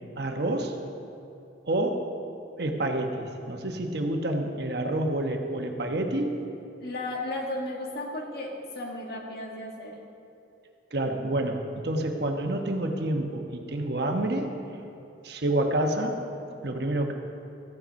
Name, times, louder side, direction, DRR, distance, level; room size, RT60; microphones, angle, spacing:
voice 1, 0.2-0.8 1.6-2.1 2.6-6.4 10.9-14.5 15.2-16.2 16.6-17.1, right 1 dB, 60° right, 3 dB, 1.2 m, -28 dB
voice 2, 6.8-10.0, left 1 dB, 60° left, -1 dB, 1.9 m, -34 dB
14.5 x 8.9 x 5.3 m, 2.8 s
head